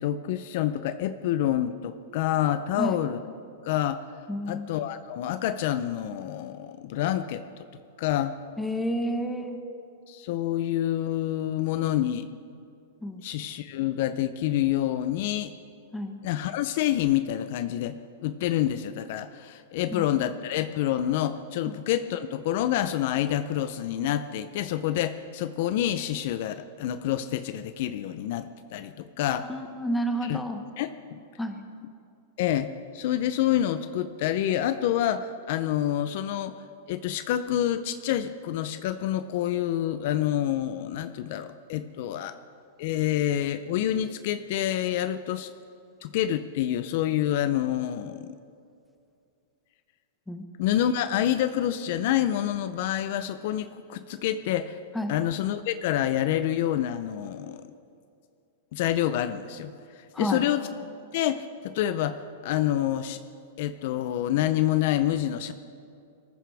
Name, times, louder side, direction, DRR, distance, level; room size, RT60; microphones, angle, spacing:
voice 1, 0.0-3.2 3.6-4.0 4.5-7.4 8.0-8.3 10.1-12.3 13.2-15.5 16.2-29.5 30.2-30.4 30.8-31.2 32.4-36.6 36.9-42.3 42.8-45.5 46.0-48.4 50.6-54.8 55.1-57.7 58.7-60.6 61.1-63.2 63.6-65.5, left 12 dB, 55° left, 11 dB, 0.6 m, -27 dB
voice 2, 4.3-4.7 8.6-9.6 13.0-13.2 15.9-16.2 19.9-20.0 21.7-21.8 29.5-30.6 31.4-31.6 50.3-50.4 54.9-55.1 60.1-60.4, equal, 5° left, 5 dB, 1.2 m, -30 dB
23.0 x 14.0 x 3.5 m, 2.5 s
supercardioid pair, 145°, 0 cm